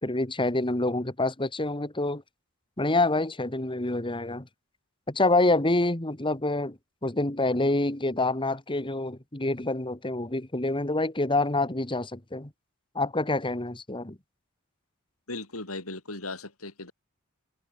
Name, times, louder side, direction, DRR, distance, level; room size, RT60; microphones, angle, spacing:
voice 1, 0.0-2.2 2.8-4.5 5.1-12.5 12.9-14.2, left 2 dB, 25° left, 2.1 m, -27 dB
voice 2, 15.3-16.9, left 2 dB, 80° left, 7.6 m, -37 dB
head